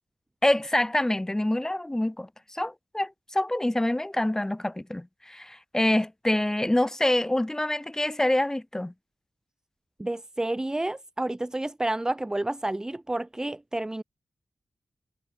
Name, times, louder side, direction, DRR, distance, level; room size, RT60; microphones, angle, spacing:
voice 1, 0.4-8.9, left 1 dB, 10° left, 1.3 m, -26 dB
voice 2, 10.0-14.0, right 1 dB, 15° right, 0.7 m, -30 dB
wide cardioid pair, 120°, 4 cm